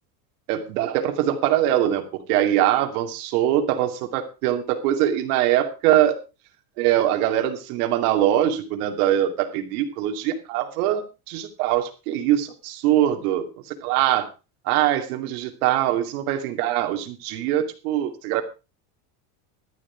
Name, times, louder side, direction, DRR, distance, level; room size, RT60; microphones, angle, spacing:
voice 1, 0.5-6.2 6.8-14.3 14.7-18.4, right 12 dB, 80° right, 7 dB, 2.5 m, -23 dB
12.5 x 11.0 x 4.6 m, 0.29 s
cardioid pair, 175°, 44 cm